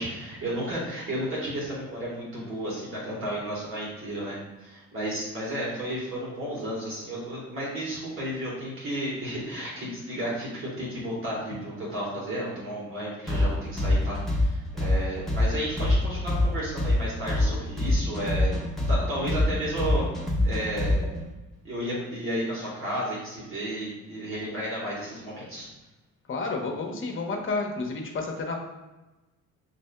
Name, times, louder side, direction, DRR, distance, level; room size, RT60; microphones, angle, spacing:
voice 1, 0.0-18.5 18.9-20.1 20.4-21.0 21.6-25.7, equal, 45° right, -6 dB, 1.4 m, -33 dB
sound 1, 13.3-21.2, left 1 dB, ahead, 1.0 m, -24 dB
voice 2, 26.3-28.6, left 3 dB, 45° left, 1 dB, 0.9 m, -30 dB
6.2 x 2.6 x 2.2 m, 1.1 s
cardioid pair, 90°, 30 cm